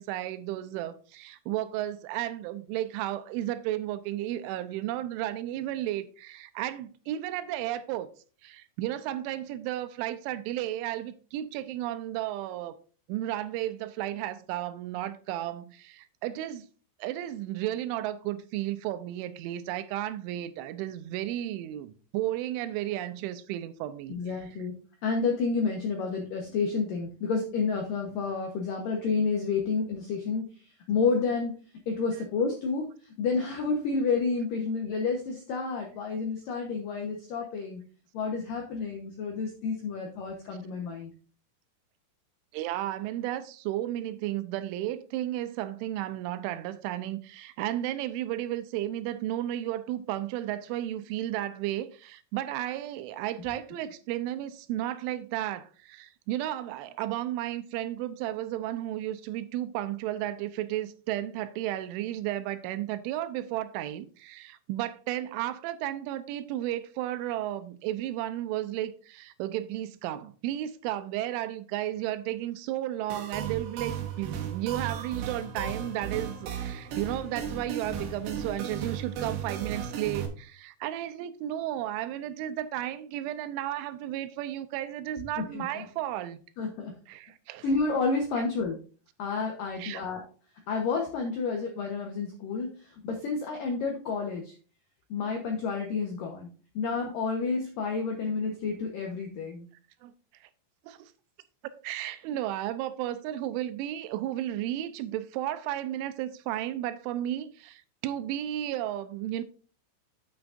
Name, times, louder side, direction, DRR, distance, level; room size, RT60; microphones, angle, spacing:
voice 1, 0.0-8.1 8.4-12.8 13.1-16.7 17.0-24.2 42.5-86.4 87.1-87.6 89.8-90.0 100.0-100.1 100.4-100.5 100.8-101.1 101.8-109.4, right 13 dB, 85° right, 3.0 m, -33 dB
voice 2, 24.1-24.8 25.0-31.6 31.9-37.8 38.1-41.1 85.4-85.9 86.6-86.9 87.6-88.8 89.2-90.2 90.7-94.6 95.1-96.5 96.8-99.7, left 4 dB, 80° left, 2.0 m, -30 dB
sound 1, 73.1-80.3, right 7 dB, 65° right, 2.8 m, -35 dB
9.1 x 8.8 x 2.5 m
omnidirectional pair, 5.6 m